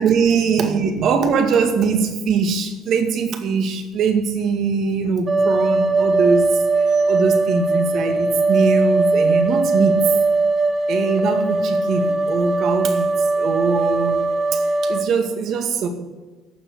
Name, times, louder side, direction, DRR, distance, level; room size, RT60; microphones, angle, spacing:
voice 1, 0.0-6.6 6.9-10.0 10.9-15.9, right 5 dB, 55° right, 6 dB, 2.1 m, -21 dB
sound 1, 5.3-15.0, right 3 dB, 35° right, 1.9 m, -19 dB
11.5 x 7.4 x 8.4 m, 1.3 s
cardioid pair, 130°, 0 cm